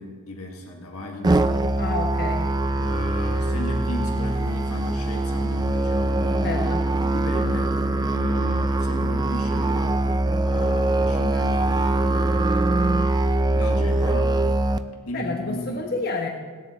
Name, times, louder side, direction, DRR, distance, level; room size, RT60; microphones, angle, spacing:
voice 1, 0.0-1.4 2.8-6.6 7.0-7.7 8.0-12.7 13.5-14.4 15.0-15.9, left 1 dB, 75° left, 1 dB, 1.7 m, -35 dB
Musical instrument, 1.2-14.8, right 2 dB, 20° right, 0.4 m, -22 dB
Motorcycle, 1.5-7.5, equal, 15° left, 3.1 m, -42 dB
voice 2, 1.8-2.5 6.4-6.9 15.1-16.3, left 3 dB, 45° left, 2 dB, 1.0 m, -29 dB
17.5 x 10.0 x 4.2 m, 1.5 s
head